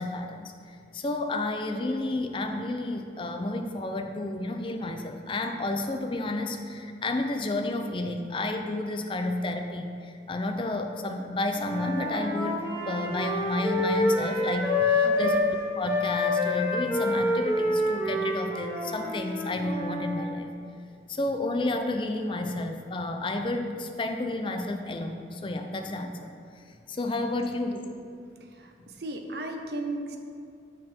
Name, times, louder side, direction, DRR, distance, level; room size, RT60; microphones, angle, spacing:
voice 1, 0.0-12.6 12.9-15.4 15.8-20.5 21.1-26.3 26.9-27.8, left 2 dB, 30° left, 5 dB, 0.5 m, -31 dB
Wind instrument woodwind instrument, 11.6-15.5 15.8-20.2, left 2 dB, 10° right, 1.1 m, -27 dB
voice 2, 15.0-15.4 27.6-27.8 28.6-30.2, right 2 dB, 65° right, 4 dB, 0.7 m, -36 dB
6.6 x 6.1 x 4.4 m, 2.3 s
head